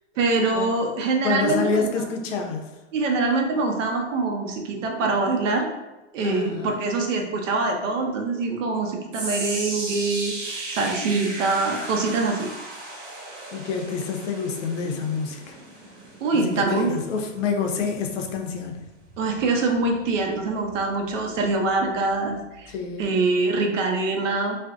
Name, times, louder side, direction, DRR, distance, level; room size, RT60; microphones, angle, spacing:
voice 1, 0.2-1.9 2.9-5.7 6.1-12.5 16.2-16.9 19.2-22.7 23.0-24.6, right 3 dB, 90° right, 2 dB, 0.6 m, -24 dB
voice 2, 1.2-2.7 6.2-6.8 13.5-15.6 16.3-18.9 22.7-23.1, left 5 dB, 80° left, 4 dB, 0.6 m, -27 dB
sound 1, 9.1-21.4 21.8-22.1 22.8-22.9, right 2 dB, 40° right, 0.9 m, -37 dB
2.5 x 2.0 x 2.4 m, 1.1 s
supercardioid pair, 170°, 37 cm